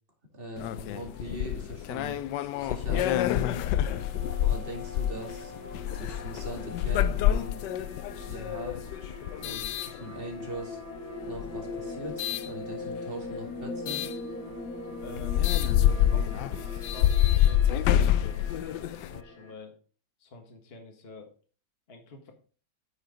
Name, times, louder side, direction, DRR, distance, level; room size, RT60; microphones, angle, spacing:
voice 1, 0.3-2.2 2.6-3.7 4.3-5.5 5.9-7.6 8.2-8.8 9.4-10.8 11.3-14.0, right 1 dB, 30° right, 1 dB, 2.4 m, -41 dB
sound 1, 0.6-10.6 11.2-12.5 13.9-14.1 14.7-14.8 15.0-19.2, left 11 dB, 85° left, 1.2 m, -27 dB
sound 2, 2.6-19.5, left 2 dB, 50° right, 3.3 m, -41 dB
voice 2, 15.0-15.5 15.9-19.8 20.2-21.3 21.9-22.3, left 2 dB, 35° left, 2 dB, 1.7 m, -48 dB
9.0 x 6.6 x 3.8 m, 0.38 s
omnidirectional pair, 1.8 m